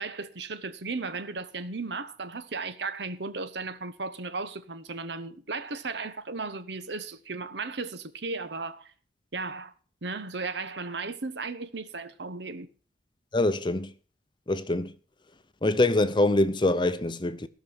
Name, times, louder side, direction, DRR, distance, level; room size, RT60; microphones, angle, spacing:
voice 1, 0.0-8.9 9.3-9.7 10.0-12.7, right 3 dB, 70° right, 1.0 m, -35 dB
voice 2, 13.3-13.9 14.5-15.0 15.6-17.5, left 2 dB, 25° left, 0.7 m, -24 dB
16.0 x 6.2 x 7.2 m
head